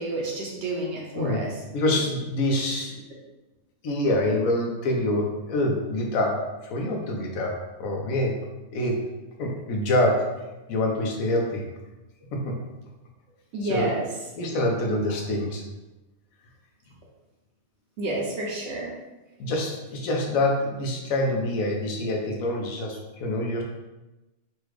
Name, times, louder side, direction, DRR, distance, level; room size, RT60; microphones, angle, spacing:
voice 1, 0.0-1.5 1.9-2.0 13.5-14.1 18.0-18.9, right 2 dB, 65° right, -2 dB, 0.8 m, -30 dB
voice 2, 1.7-3.0 3.8-7.5 7.8-8.3 8.7-9.0 9.4-10.3 10.7-11.6 12.3-12.6 13.6-13.9 14.4-15.6 19.4-23.6, left 1 dB, 75° left, 1 dB, 1.0 m, -26 dB
3.3 x 2.3 x 3.1 m, 1.1 s
omnidirectional pair, 1.5 m